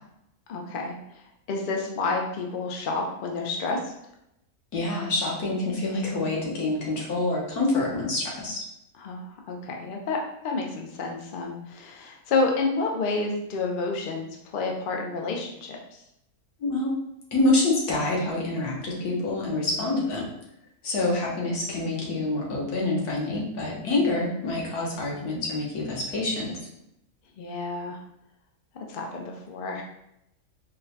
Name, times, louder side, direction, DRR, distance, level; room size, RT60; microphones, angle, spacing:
voice 1, 0.5-1.0 1.5-3.8 9.0-10.2 10.4-15.8 19.6-20.0 23.7-24.0 27.4-28.0 28.9-29.8, left 3 dB, 65° left, 1 dB, 0.5 m, -29 dB
voice 2, 4.7-8.6 16.6-16.9 17.3-20.3 20.8-26.5, left 2 dB, 90° left, -3 dB, 1.5 m, -26 dB
4.3 x 2.1 x 2.7 m, 0.81 s
omnidirectional pair, 1.6 m